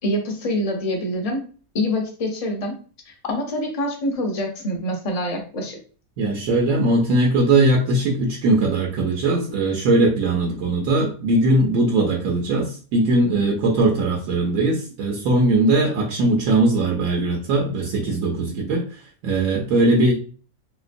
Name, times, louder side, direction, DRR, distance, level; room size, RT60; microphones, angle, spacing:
voice 1, 0.0-1.4 1.7-2.7 3.1-5.8, left 1 dB, 40° left, 2 dB, 0.5 m, -25 dB
voice 2, 6.2-20.1, right 2 dB, 75° right, -1 dB, 1.0 m, -20 dB
3.1 x 2.9 x 2.5 m, 0.39 s
omnidirectional pair, 1.5 m